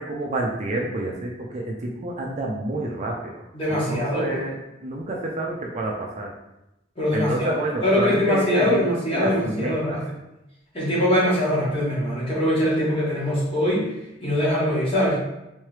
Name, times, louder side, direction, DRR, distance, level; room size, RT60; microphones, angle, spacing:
voice 1, 0.0-3.3 3.7-6.3 7.1-8.9 9.1-10.1, right 1 dB, 35° right, -1 dB, 0.4 m, -29 dB
voice 2, 3.5-4.4 7.0-10.0 10.7-13.9 14.2-15.2, left 1 dB, 25° left, -7 dB, 1.4 m, -22 dB
3.6 x 3.1 x 3.2 m, 0.90 s
head